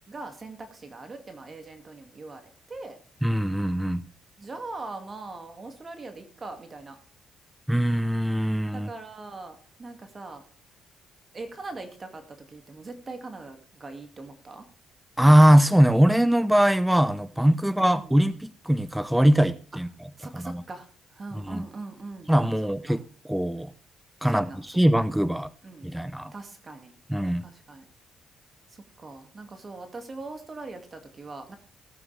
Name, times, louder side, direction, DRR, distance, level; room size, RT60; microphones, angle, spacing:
voice 1, 0.1-3.0 4.4-7.0 8.7-10.4 11.3-14.7 17.7-18.2 20.2-22.3 22.9-23.0 24.2-24.8 25.6-25.9 26.3-26.9 27.4-27.8 28.7-31.6, right 3 dB, 35° right, 2.2 m, -41 dB
voice 2, 3.2-4.0 7.7-8.9 15.2-19.9 20.3-20.6 21.3-21.6 22.3-23.0 23.3-23.7 24.2-24.5 24.8-25.5 25.8-26.3 27.1-27.4, equal, 5° right, 0.7 m, -21 dB
17.0 x 8.7 x 3.4 m
cardioid pair, 90°, 0 cm